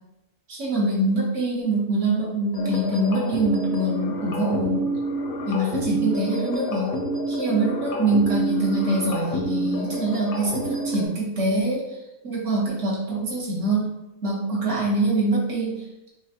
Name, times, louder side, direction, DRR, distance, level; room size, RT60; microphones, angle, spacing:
voice 1, 0.5-4.9 5.5-7.0 7.3-11.8 12.2-13.9 14.2-15.7, right 2 dB, 50° right, -6 dB, 1.5 m, -24 dB
sound 1, 2.5-11.1, right 1 dB, 65° left, 1.1 m, -28 dB
4.7 x 3.1 x 2.8 m, 0.98 s
omnidirectional pair, 1.7 m